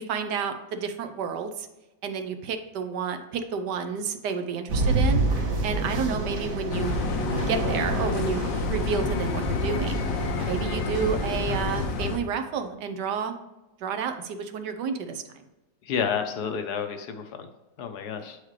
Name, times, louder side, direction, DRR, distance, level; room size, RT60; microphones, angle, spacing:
voice 1, 0.0-1.7 2.0-5.2 5.6-7.0 7.4-10.0 10.4-13.3 13.8-15.4, right 6 dB, 75° right, 8 dB, 1.2 m, -30 dB
sound 1, 4.7-11.9, right 2 dB, 45° right, 1.4 m, -29 dB
sound 2, 6.7-12.2, left 4 dB, 90° left, 1.5 m, -29 dB
voice 2, 15.8-17.5 17.8-18.4, left 7 dB, 70° left, 7 dB, 1.1 m, -30 dB
8.1 x 4.9 x 3.2 m, 1.0 s
omnidirectional pair, 2.0 m